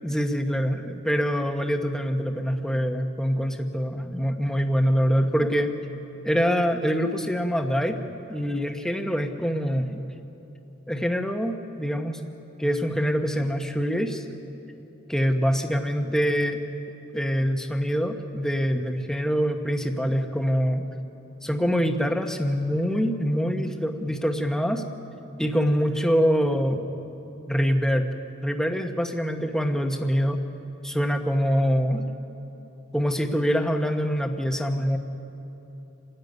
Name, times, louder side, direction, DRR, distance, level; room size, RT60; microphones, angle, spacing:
voice 1, 0.0-5.7 6.2-10.0 10.9-12.2 12.6-14.2 15.1-16.6 17.1-20.8 21.4-24.8 25.4-26.8 27.5-28.1 28.4-30.4 30.8-32.1 32.9-35.0, equal, 5° left, 5 dB, 1.1 m, -25 dB
27.5 x 13.5 x 9.5 m, 3.0 s
head